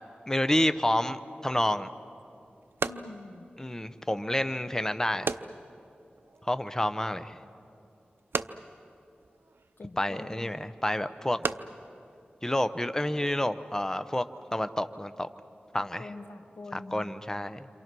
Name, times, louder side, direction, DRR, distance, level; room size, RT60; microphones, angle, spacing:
voice 1, 0.3-1.9 3.6-5.3 6.4-7.4 10.0-11.4 12.4-14.2 14.5-15.3 15.7-16.1 16.7-17.7, left 1 dB, 15° left, 11 dB, 0.8 m, -29 dB
sound 1, 2.1-13.1, right 4 dB, 80° right, 0.6 m, -40 dB
voice 2, 2.8-3.5 7.5-7.6 9.8-10.5 15.7-17.1, left 2 dB, 80° left, 6 dB, 1.5 m, -45 dB
28.5 x 26.5 x 6.1 m, 2.7 s
wide cardioid pair, 60°, 4 cm